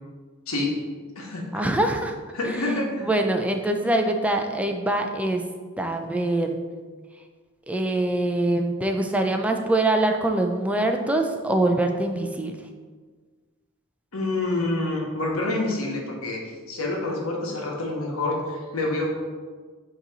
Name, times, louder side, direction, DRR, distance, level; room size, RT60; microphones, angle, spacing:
voice 1, 1.5-2.1 2.5-2.6 3.0-5.4 5.8-6.6 7.7-12.6, right 1 dB, 5° right, 4 dB, 0.4 m, -24 dB
voice 2, 2.3-3.1 14.1-19.1, left 2 dB, 75° left, -1 dB, 1.3 m, -27 dB
7.9 x 3.0 x 4.0 m, 1.5 s
head